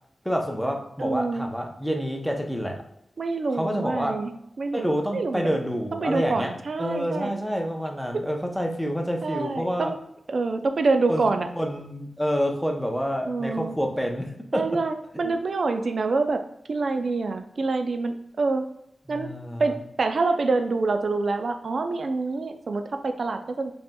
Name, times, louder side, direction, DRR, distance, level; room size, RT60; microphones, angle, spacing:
voice 1, 0.2-2.8 3.5-4.1 4.7-6.5 6.8-9.9 11.1-11.3 11.6-14.7 15.2-15.3 19.1-19.6, equal, 5° left, 2 dB, 0.6 m, -28 dB
voice 2, 1.0-1.5 3.2-5.6 5.9-7.3 8.1-8.2 9.2-10.0 10.3-11.5 13.2-13.8 14.5-16.4 16.7-18.6 19.1-19.3 19.6-23.7, right 3 dB, 60° right, 7 dB, 0.4 m, -26 dB
5.1 x 2.9 x 2.2 m, 0.76 s
wide cardioid pair, 125°, 0 cm